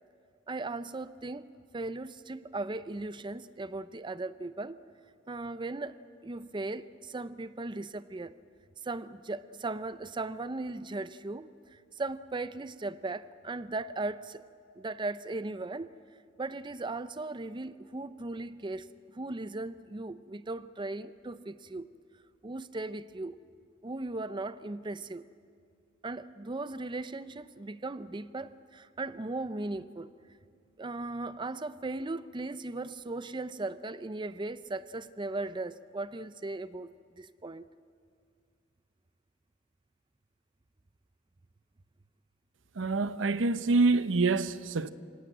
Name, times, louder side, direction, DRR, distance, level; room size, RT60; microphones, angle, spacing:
voice 1, 0.5-4.8 5.3-8.3 8.8-14.4 14.8-15.9 16.4-21.9 22.4-23.4 23.8-25.3 26.0-30.1 30.8-37.7, right 2 dB, 25° right, 0.5 m, -37 dB
voice 2, 42.7-44.9, right 3 dB, 85° right, 0.8 m, -26 dB
26.5 x 17.0 x 9.0 m
head